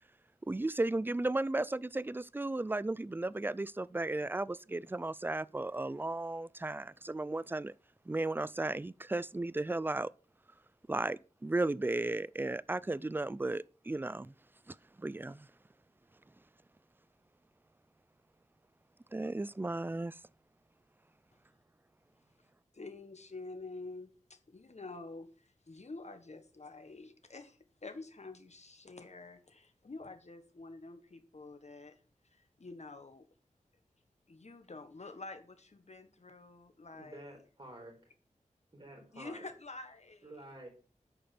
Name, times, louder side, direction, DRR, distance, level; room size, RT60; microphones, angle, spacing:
voice 1, 0.5-7.7 8.1-10.1 10.9-14.3 14.7-15.5 19.1-20.2, right 2 dB, 15° right, 0.3 m, -35 dB
voice 2, 22.7-33.2 34.3-37.4 39.1-40.3, left 3 dB, 60° left, 1.4 m, -48 dB
voice 3, 36.9-38.0 38.7-39.4 40.2-40.7, right 1 dB, 40° right, 4.5 m, -50 dB
8.6 x 5.2 x 5.9 m
wide cardioid pair, 55°, 13 cm